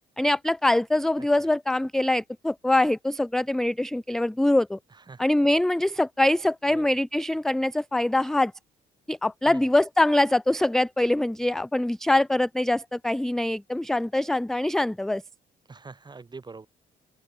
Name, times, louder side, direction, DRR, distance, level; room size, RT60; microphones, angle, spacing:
voice 1, 0.2-4.8 5.2-8.5 9.1-15.2, left 1 dB, ahead, 0.3 m, -23 dB
voice 2, 15.7-16.7, right 4 dB, 20° right, 0.9 m, -43 dB
open air
cardioid pair, 90°, 20 cm